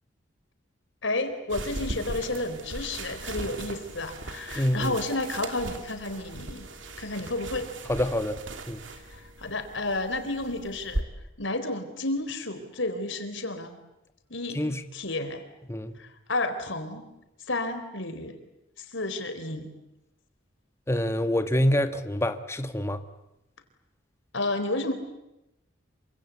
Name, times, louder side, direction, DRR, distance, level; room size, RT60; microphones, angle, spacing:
voice 1, 1.0-6.6 7.0-7.7 8.9-11.0 11.4-13.7 14.3-14.6 14.9-15.4 16.0-17.1 17.5-18.4 18.8-19.7 24.3-24.9, left 2 dB, 75° left, 8 dB, 4.1 m, -31 dB
sound 1, 1.5-11.0, right 2 dB, 75° right, 2.8 m, -38 dB
voice 2, 4.6-5.0 7.9-8.4 8.7-8.8 14.5-14.8 15.7-16.0 20.9-23.0, left 1 dB, 15° left, 8 dB, 1.5 m, -26 dB
28.0 x 25.5 x 8.5 m, 0.90 s
head